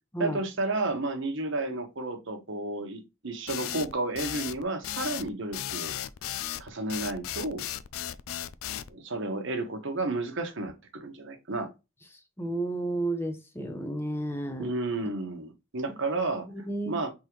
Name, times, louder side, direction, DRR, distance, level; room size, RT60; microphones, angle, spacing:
voice 1, 0.2-6.0 6.6-7.6 8.9-11.7 14.6-16.5 16.9-17.1, right 2 dB, 65° right, 1.1 m, -32 dB
sound 1, 3.5-8.9, left 11 dB, 90° left, 0.4 m, -35 dB
voice 2, 12.4-14.7 16.5-17.0, right 2 dB, 10° left, 0.6 m, -32 dB
4.1 x 3.7 x 3.0 m
head